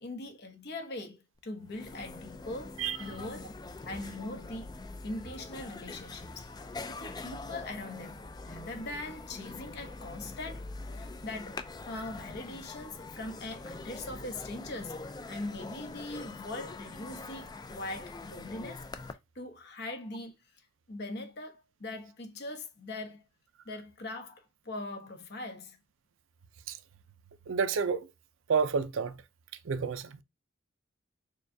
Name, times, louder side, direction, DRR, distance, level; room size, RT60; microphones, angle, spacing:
voice 1, 0.0-3.5 3.9-4.7 5.0-6.5 6.9-10.7 11.0-15.0 15.3-18.9 19.3-20.4 20.9-23.2 23.7-25.8, left 2 dB, 50° left, 0.9 m, -41 dB
sound 1, 1.4-1.5 1.7-19.1, left 3 dB, 20° left, 0.3 m, -44 dB
voice 2, 27.5-28.1 28.5-29.1 29.7-30.1, right 5 dB, 70° right, 0.4 m, -29 dB
6.6 x 2.3 x 2.7 m
head